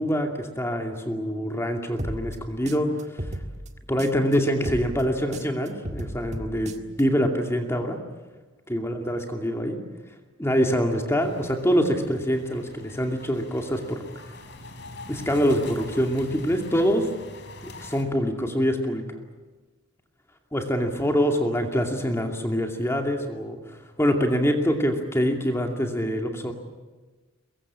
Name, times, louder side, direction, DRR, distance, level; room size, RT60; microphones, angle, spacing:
voice 1, 0.0-2.9 3.9-8.0 8.7-9.8 10.4-14.0 15.1-17.1 17.6-19.2 20.5-26.5, equal, 15° left, 3 dB, 2.5 m, -25 dB
sound 1, 2.0-4.3 4.6-7.0, right 1 dB, 35° right, 1.7 m, -35 dB
sound 2, 11.2-18.0, left 2 dB, 60° left, 3.7 m, -43 dB
23.5 x 22.0 x 8.7 m, 1.3 s
head